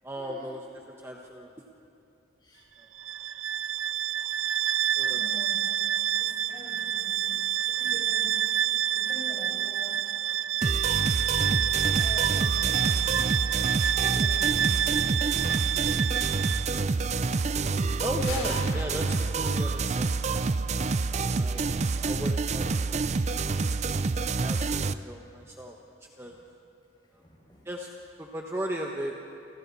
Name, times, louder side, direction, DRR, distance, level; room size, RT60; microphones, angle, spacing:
voice 1, 0.0-0.6 1.0-1.5 5.0-5.2 18.0-20.3 21.3-21.7 22.0-22.6 22.9-23.0 24.4-25.8 26.2-26.4 27.6-27.9 28.2-29.1, equal, 15° right, 0 dB, 1.1 m, -36 dB
Bowed string instrument, 2.9-16.8, right 11 dB, 80° right, 0.6 m, -28 dB
voice 2, 5.1-8.4 8.7-10.1 11.8-13.3 14.0-14.8 21.0-21.4 26.3-26.4 27.2-27.6, left 1 dB, 25° left, -3 dB, 6.0 m, -46 dB
sound 1, 10.6-24.9, right 4 dB, 35° right, 0.5 m, -28 dB
Gunshot gunfire, 18.1-20.1, left 2 dB, 90° left, 6.4 m, -39 dB
29.0 x 26.5 x 4.2 m, 2.7 s
head